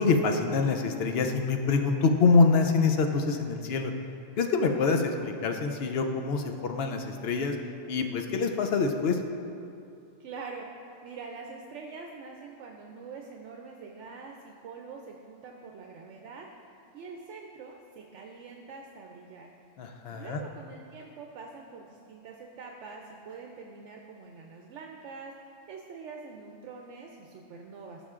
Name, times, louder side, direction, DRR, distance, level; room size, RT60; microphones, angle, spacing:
voice 1, 0.0-3.9 4.4-7.6 7.9-9.2 19.8-20.4, left 4 dB, 65° left, 5 dB, 0.8 m, -25 dB
voice 2, 10.2-10.7 11.0-16.5 16.9-19.5 20.1-25.3 25.7-28.0, right 4 dB, 75° right, 1 dB, 0.9 m, -44 dB
14.5 x 5.6 x 2.4 m, 2.6 s
omnidirectional pair, 1.2 m